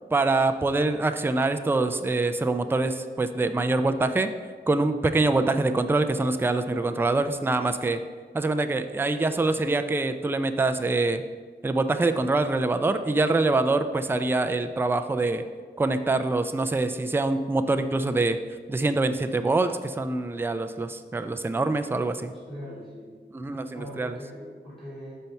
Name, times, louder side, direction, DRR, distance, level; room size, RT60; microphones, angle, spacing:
voice 1, 0.1-4.3 4.7-8.0 8.3-11.2 11.6-15.4 15.8-18.4 18.7-22.3 23.3-24.2, right 2 dB, 10° right, 8 dB, 0.3 m, -25 dB
voice 2, 22.2-23.1 23.7-25.2, equal, 30° left, -8 dB, 1.9 m, -41 dB
5.4 x 4.5 x 5.5 m, 1.5 s
wide cardioid pair, 75°, 19 cm